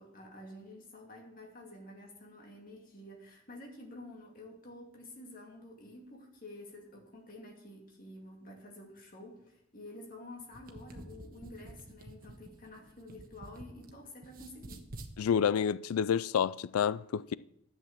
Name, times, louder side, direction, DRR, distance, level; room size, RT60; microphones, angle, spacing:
voice 1, 0.0-14.9, left 1 dB, 40° left, 2.6 m, -50 dB
sound 1, 10.4-13.9 14.2-15.1, right 2 dB, 40° right, 1.3 m, -49 dB
voice 2, 15.2-17.3, left 8 dB, 90° left, 0.4 m, -29 dB
11.5 x 8.2 x 7.4 m
head